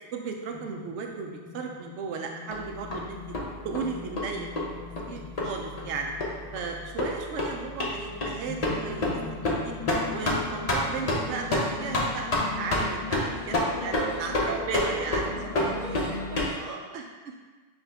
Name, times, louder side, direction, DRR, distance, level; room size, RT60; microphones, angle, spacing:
voice 1, 0.1-3.2 3.6-4.7 5.1-6.1 6.5-9.1 9.3-9.7 10.1-15.3 16.5-17.3, right 5 dB, 80° right, 2 dB, 0.9 m, -35 dB
sound 1, 0.5-16.2, left 5 dB, 60° left, 0.3 m, -43 dB
sound 2, 2.5-16.5, left 1 dB, 40° left, 0.7 m, -30 dB
voice 2, 13.8-17.0, right 4 dB, 55° right, 1 dB, 0.5 m, -39 dB
6.2 x 2.4 x 3.4 m, 1.3 s
omnidirectional pair, 1.2 m